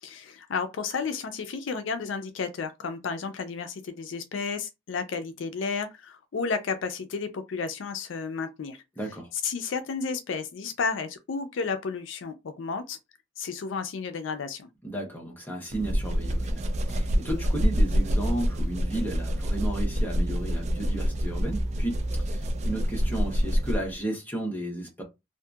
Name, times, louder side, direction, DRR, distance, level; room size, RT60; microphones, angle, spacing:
voice 1, 0.0-8.8 9.4-13.0 13.4-14.7, left 5 dB, 70° left, 0.4 m, -32 dB
voice 2, 9.0-9.3 14.8-25.0, right 1 dB, 10° left, 0.9 m, -34 dB
sound 1, 15.7-24.0, equal, 35° right, 0.3 m, -26 dB
2.7 x 2.5 x 2.3 m
head